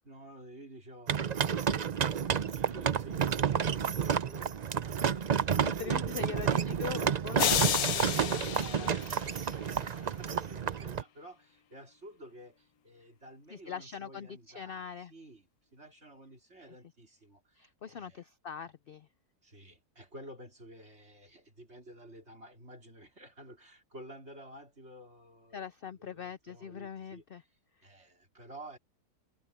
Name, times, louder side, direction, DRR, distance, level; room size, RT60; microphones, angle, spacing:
voice 1, 0.0-7.2 7.8-18.3 19.4-25.6 26.0-28.8, right 1 dB, 45° right, 4.5 m, -52 dB
sound 1, 1.1-11.0, right 7 dB, 60° right, 0.4 m, -30 dB
voice 2, 5.6-8.1 8.4-8.9 13.5-15.1 17.6-19.1 25.5-27.4, left 7 dB, 60° left, 0.5 m, -42 dB
sound 2, 7.4-9.7, left 10 dB, 75° left, 1.3 m, -31 dB
omnidirectional pair, 1.6 m